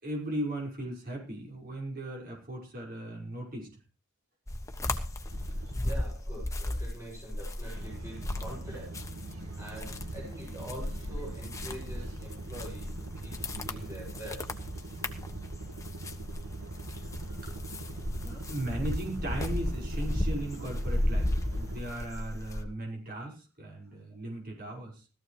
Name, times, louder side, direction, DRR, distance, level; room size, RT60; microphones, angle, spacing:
voice 1, 0.0-3.8 17.4-17.5 18.2-25.0, right 1 dB, 45° right, -1 dB, 5.8 m, -37 dB
sound 1, 4.5-9.3 9.6-22.6, left 1 dB, 15° left, 1.2 m, -34 dB
sound 2, 5.3-5.8 7.8-21.8, right 2 dB, 75° right, 1.9 m, -41 dB
voice 2, 5.8-9.1 9.5-14.6 18.8-18.9, right 1 dB, 15° right, -4 dB, 7.4 m, -45 dB
17.5 x 14.0 x 3.4 m, 0.34 s
head